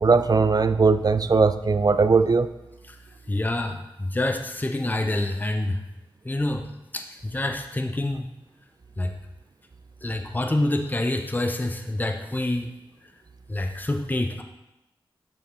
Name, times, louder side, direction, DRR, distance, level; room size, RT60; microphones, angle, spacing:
voice 1, 0.0-2.5, right 4 dB, 45° right, 12 dB, 0.4 m, -19 dB
voice 2, 3.3-5.8 6.3-6.7 6.9-8.3 9.0-9.1 10.0-12.7 13.5-14.4, left 1 dB, 20° left, 5 dB, 0.6 m, -27 dB
9.9 x 4.4 x 3.1 m, 0.94 s
cardioid pair, 40°, 9 cm